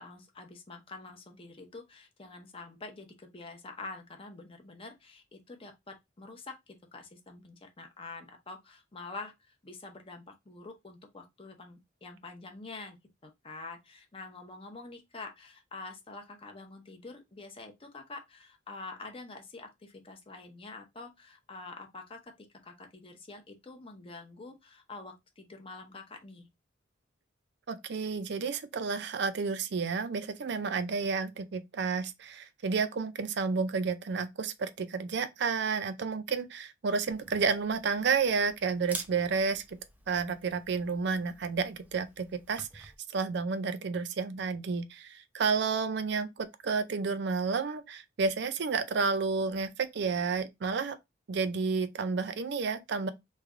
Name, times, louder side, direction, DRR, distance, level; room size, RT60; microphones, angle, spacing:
voice 1, 0.0-13.0 13.2-26.5, left 3 dB, 30° left, 0.6 m, -46 dB
voice 2, 27.7-39.8 40.1-51.0 51.3-53.1, right 5 dB, 60° right, 0.4 m, -31 dB
Camera, 37.1-42.9, right 2 dB, 10° right, 0.5 m, -49 dB
3.2 x 2.3 x 3.6 m
head